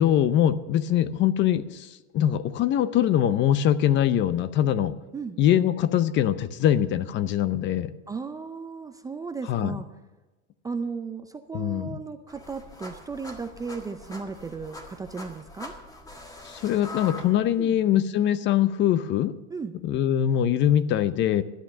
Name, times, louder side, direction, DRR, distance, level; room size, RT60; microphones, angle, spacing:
voice 1, 0.0-5.0 5.4-7.9 9.5-9.8 11.5-12.0 16.4-19.3 19.8-21.4, left 10 dB, 35° left, 15 dB, 0.6 m, -23 dB
voice 2, 8.1-9.9 10.6-15.7 17.6-17.8 19.5-19.7, right 4 dB, 10° right, 8 dB, 0.4 m, -35 dB
sound 1, 12.3-17.8, left 2 dB, 10° left, 1.6 m, -43 dB
13.0 x 8.9 x 7.2 m, 1.1 s
supercardioid pair, 140°, 33 cm